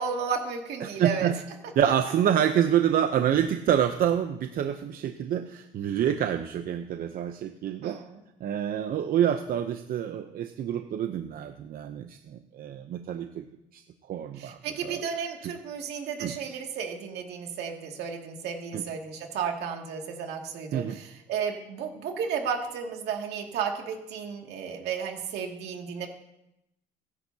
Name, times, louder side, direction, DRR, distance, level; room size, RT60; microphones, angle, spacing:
voice 1, 0.0-1.3 7.8-8.2 14.4-26.1, right 6 dB, 75° right, 2 dB, 2.4 m, -33 dB
voice 2, 0.8-1.3 1.8-8.0 8.4-13.4 13.7-13.8 14.1-15.0 15.4-15.5 16.2-16.3 18.7-18.8 20.7-21.0, right 9 dB, 60° right, 7 dB, 0.8 m, -27 dB
24.0 x 11.0 x 2.8 m, 0.86 s
cardioid pair, 110°, 17 cm